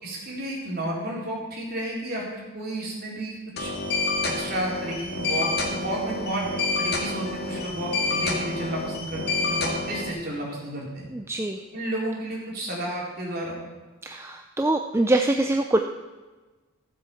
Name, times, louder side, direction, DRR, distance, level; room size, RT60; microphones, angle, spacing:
voice 1, 0.0-3.7 4.2-6.5 6.8-11.1 11.7-13.6, right 1 dB, 40° right, -4 dB, 4.2 m, -32 dB
sound 1, 3.6-10.1, left 3 dB, 45° left, 2.1 m, -28 dB
voice 2, 11.1-11.6 14.0-15.8, right 2 dB, 10° right, 4 dB, 0.5 m, -24 dB
14.5 x 7.8 x 7.0 m, 1.3 s
head